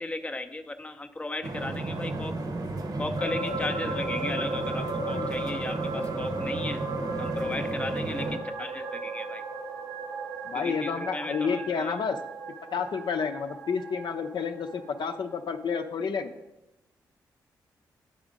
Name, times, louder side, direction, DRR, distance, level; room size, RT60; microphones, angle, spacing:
voice 1, 0.0-2.3 3.0-6.8 7.2-9.4 10.5-11.9, left 2 dB, 15° left, 7 dB, 0.6 m, -35 dB
sound 1, 1.4-8.4, right 2 dB, 55° right, 1.0 m, -33 dB
sound 2, 3.2-15.0 15.3-15.4, right 3 dB, 80° right, 1.3 m, -36 dB
voice 2, 10.4-12.2 12.7-16.3, left 6 dB, 60° left, 7 dB, 0.5 m, -30 dB
9.3 x 3.5 x 5.1 m, 0.94 s
supercardioid pair, 45°, 9 cm